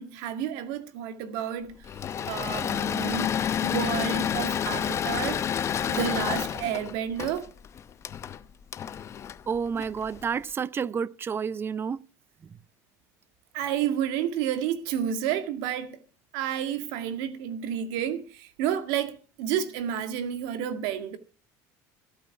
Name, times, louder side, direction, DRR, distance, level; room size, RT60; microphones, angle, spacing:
voice 1, 0.0-1.9 2.3-5.4 5.9-7.5 13.5-16.0 16.3-21.2, right 9 dB, 75° right, 2.0 m, -30 dB
Engine / Mechanisms, 1.8-10.2, left 8 dB, 35° left, 0.8 m, -29 dB
voice 2, 9.5-12.0, right 6 dB, 30° right, 0.6 m, -30 dB
15.0 x 9.2 x 5.9 m
supercardioid pair, 105°, 8 cm